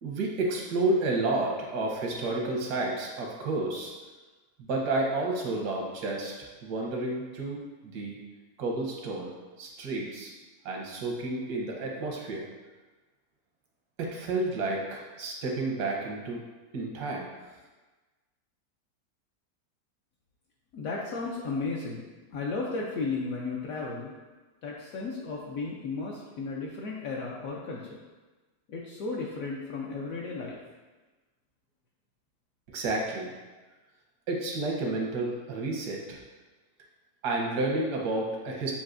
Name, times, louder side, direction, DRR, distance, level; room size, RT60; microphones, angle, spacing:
voice 1, 0.0-3.9 4.6-6.3 6.6-8.2 8.6-9.3 9.6-10.3 10.6-12.5 14.0-16.4 16.7-17.3 32.7-33.3 34.3-36.2 37.2-38.7, right 2 dB, 90° right, -1 dB, 1.4 m, -30 dB
voice 2, 20.7-22.0 22.3-24.1 24.6-27.8 28.7-30.6, left 3 dB, 70° left, -3 dB, 0.9 m, -34 dB
7.1 x 2.6 x 2.5 m, 1.2 s
omnidirectional pair, 1.7 m